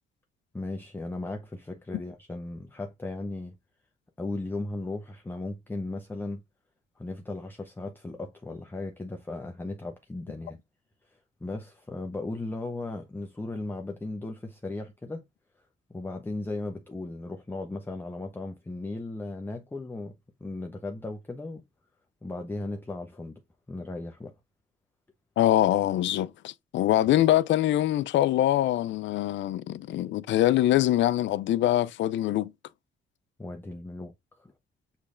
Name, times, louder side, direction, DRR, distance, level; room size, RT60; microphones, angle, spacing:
voice 1, 0.5-3.6 4.2-6.4 7.0-10.6 11.1-15.2 15.9-20.1 20.4-21.6 22.2-23.4 23.7-24.3 33.4-34.5, left 2 dB, 10° left, 0.7 m, -36 dB
voice 2, 25.4-32.5, left 13 dB, 70° left, 0.4 m, -24 dB
6.5 x 3.2 x 2.5 m
cardioid pair, 90°, 20 cm